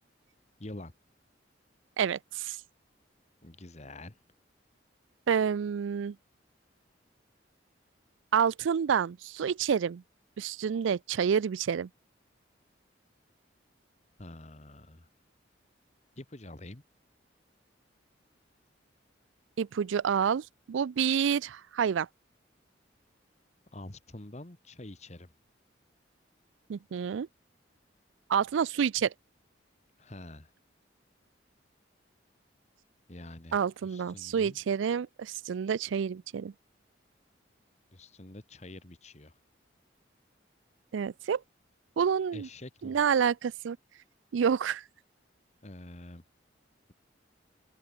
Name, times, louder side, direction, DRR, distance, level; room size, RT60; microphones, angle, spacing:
voice 1, 0.6-0.9 3.4-4.2 14.2-15.1 16.2-16.8 23.7-25.3 30.0-30.5 33.1-34.6 37.9-39.4 42.3-43.0 45.6-46.2, left 1 dB, 35° left, 1.6 m, -46 dB
voice 2, 2.0-2.6 5.3-6.2 8.3-10.0 10.4-11.9 19.6-22.1 26.7-27.3 28.3-29.1 33.5-36.5 40.9-41.4 42.0-42.5 42.8-43.8 44.3-44.8, right 7 dB, 85° right, 0.4 m, -28 dB
head